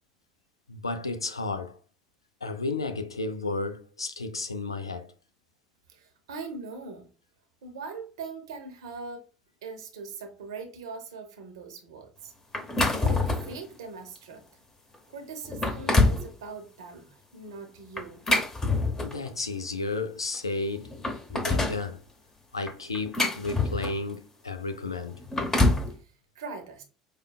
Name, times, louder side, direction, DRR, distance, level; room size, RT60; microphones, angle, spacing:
voice 1, 0.7-1.8 2.4-5.1 19.0-20.9 21.3-22.0 22.5-25.2, left 3 dB, 90° left, 0.4 m, -32 dB
voice 2, 5.9-7.1 7.6-9.3 9.6-12.3 12.9-14.4 15.1-18.2 26.0-26.8, right 4 dB, 75° right, 0.7 m, -41 dB
sound 1, 12.5-13.6 14.1-14.3 14.9-15.0 15.4-16.3 18.0-19.3 20.3-20.4 20.8-21.8 22.7-24.1 25.1-25.9, left 2 dB, 20° left, 0.8 m, -25 dB
4.9 x 2.2 x 2.2 m
figure-of-eight pair, 65°, 3 cm